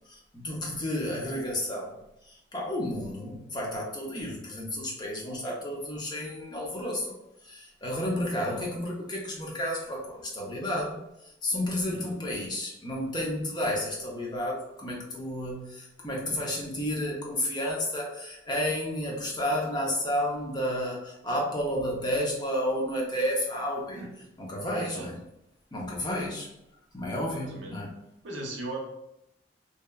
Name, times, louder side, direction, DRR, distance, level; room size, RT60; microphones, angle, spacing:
voice 1, 0.1-2.0 2.2-7.1 7.4-24.0 24.4-25.2 25.7-26.5 26.9-28.0, left 1 dB, 20° left, -3 dB, 0.5 m, -31 dB
voice 2, 11.9-12.4 23.9-24.1 24.7-25.1 27.2-27.7 28.2-28.8, right 2 dB, 70° right, -1 dB, 0.7 m, -39 dB
2.8 x 2.1 x 2.2 m, 0.85 s
head